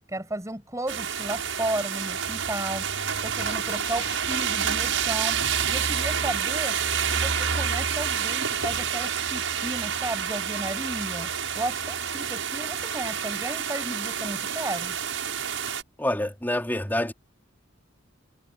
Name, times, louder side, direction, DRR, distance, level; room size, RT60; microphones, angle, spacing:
voice 1, 0.1-5.4 5.7-6.8 7.0-15.0, right 1 dB, 15° right, 7.0 m, -34 dB
sound 1, 0.9-15.8, right 7 dB, 85° right, 6.9 m, -28 dB
Camera, 3.4-4.2 10.9-11.0, left 6 dB, 30° left, 4.0 m, -42 dB
voice 2, 16.0-17.1, left 1 dB, 10° left, 3.4 m, -27 dB
head